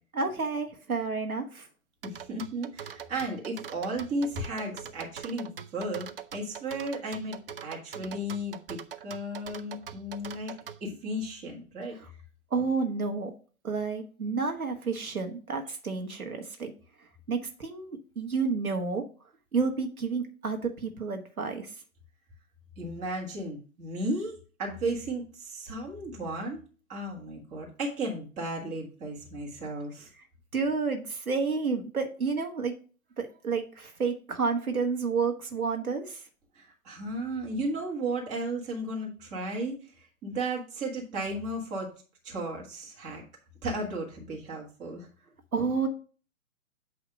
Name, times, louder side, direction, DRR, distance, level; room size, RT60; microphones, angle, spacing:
voice 1, 0.1-1.7 12.5-13.3 13.6-16.7 17.3-19.0 19.5-21.7 30.5-32.7 33.2-36.2 45.5-45.9, right 4 dB, 80° right, 3 dB, 1.4 m, -30 dB
voice 2, 2.0-10.5 10.8-12.0 22.8-26.6 26.9-30.1 36.5-41.9 42.2-43.2 43.6-45.1, right 1 dB, 15° right, -2 dB, 1.6 m, -34 dB
sound 1, 2.0-10.8, right 8 dB, 40° right, 0.5 m, -42 dB
8.4 x 2.9 x 6.2 m, 0.38 s
figure-of-eight pair, 125°, 43 cm